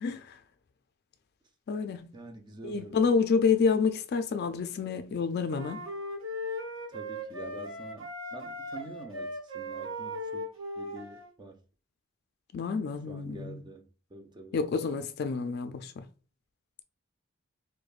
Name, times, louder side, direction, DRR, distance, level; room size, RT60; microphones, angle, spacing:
voice 1, 0.0-0.4 1.7-2.1 2.6-5.8 12.5-13.6 14.5-16.0, left 5 dB, 50° left, 0.3 m, -28 dB
voice 2, 2.1-3.1 6.9-10.5 10.8-11.6 13.1-14.6, right 2 dB, 20° right, 0.4 m, -46 dB
sound 1, 5.5-11.3, equal, 70° right, 0.9 m, -38 dB
4.8 x 2.1 x 2.4 m
head